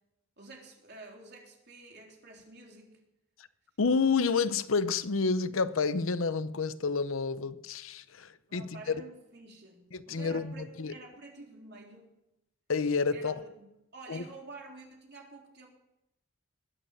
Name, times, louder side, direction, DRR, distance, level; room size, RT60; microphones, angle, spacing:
voice 1, 0.4-3.0 8.5-12.1 13.1-13.7 13.9-15.7, right 3 dB, 55° right, 3.9 m, -49 dB
voice 2, 3.8-8.9 9.9-10.9 12.7-13.4 14.1-14.2, left 4 dB, 80° left, 0.7 m, -29 dB
21.0 x 9.1 x 7.2 m
head